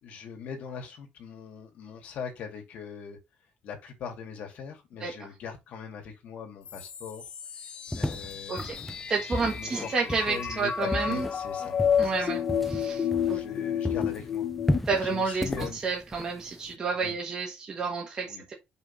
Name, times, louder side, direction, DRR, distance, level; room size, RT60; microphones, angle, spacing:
voice 1, 0.0-3.2 3.6-7.2 7.9-8.9 9.5-9.9 10.2-11.8 12.0-12.4 13.2-14.5 14.8-15.8 16.9-17.2 18.3-18.4, left 6 dB, 65° left, 2.3 m, -41 dB
sound 1, 6.7-14.8, left 8 dB, 35° left, 0.8 m, -31 dB
sound 2, 7.9-13.6 13.8-16.7, left 1 dB, 5° left, 0.4 m, -34 dB
voice 2, 9.1-11.3 12.0-13.4 14.8-18.5, right 4 dB, 30° right, 1.3 m, -30 dB
5.5 x 3.5 x 5.9 m
cardioid pair, 165°, 3 cm